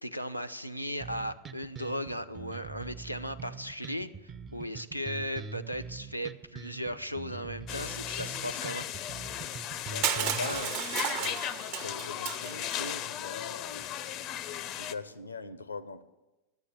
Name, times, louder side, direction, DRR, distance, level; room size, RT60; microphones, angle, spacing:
voice 1, 0.0-8.9, equal, 90° right, 11 dB, 0.5 m, -37 dB
sound 1, 1.0-10.6, right 5 dB, 25° right, 0.6 m, -44 dB
sound 2, 7.7-14.9, left 11 dB, 40° left, 0.5 m, -36 dB
voice 2, 9.9-11.4 11.8-14.1 14.5-16.0, left 3 dB, 80° left, 14 dB, 0.7 m, -41 dB
Crushing, 10.0-13.0, right 9 dB, 45° right, 0.8 m, -33 dB
12.0 x 8.2 x 8.0 m, 1.0 s
figure-of-eight pair, 90°, 0 cm